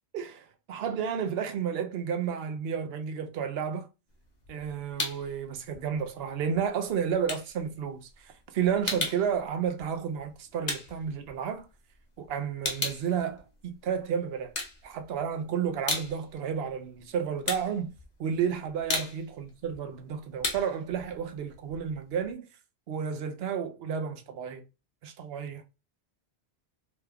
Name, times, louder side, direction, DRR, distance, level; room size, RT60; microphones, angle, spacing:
voice 1, 0.1-3.9 4.5-11.7 12.2-17.9 18.2-22.5 22.9-24.6 25.0-25.6, right 7 dB, 70° right, 0.8 m, -32 dB
sound 1, 4.1-5.4 5.7-11.9 12.2-14.0 14.4-15.3 15.6-22.3, left 3 dB, 45° left, 0.9 m, -36 dB
2.9 x 2.3 x 3.4 m
omnidirectional pair, 1.1 m